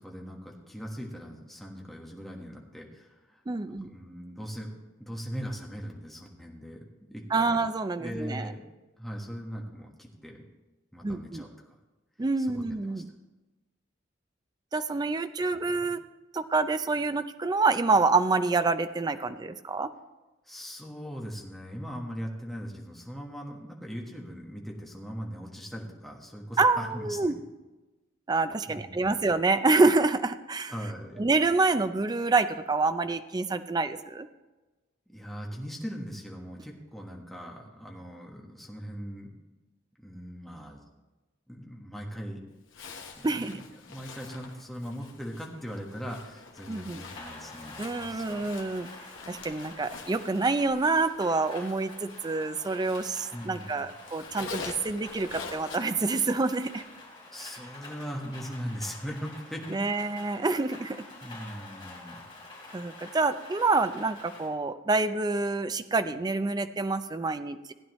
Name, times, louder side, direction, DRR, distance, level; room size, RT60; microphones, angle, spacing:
voice 1, 0.0-3.4 3.9-4.7 5.0-6.8 7.1-7.6 8.0-8.6 9.0-10.4 10.9-11.5 12.4-12.6 12.9-13.0 15.5-15.9 20.4-27.3 28.7-29.1 30.7-31.2 35.1-39.3 40.0-40.8 41.5-42.4 43.2-48.4 53.3-53.9 57.3-59.8 61.2-62.2, equal, ahead, -1 dB, 1.4 m, -40 dB
voice 2, 3.5-3.9 7.3-8.5 11.0-11.4 12.2-13.1 14.7-16.0 16.3-19.9 26.6-27.4 28.3-30.7 31.2-34.3 43.2-43.6 46.7-47.0 47.8-48.9 49.3-56.8 59.7-61.0 62.7-67.7, right 3 dB, 20° right, 11 dB, 0.4 m, -27 dB
Zipper (clothing), 42.7-53.6 53.9-56.8, left 4 dB, 70° left, 1.2 m, -46 dB
Rain, 47.0-64.5, left 2 dB, 25° left, 3.1 m, -47 dB
15.5 x 9.8 x 3.1 m, 1.2 s
head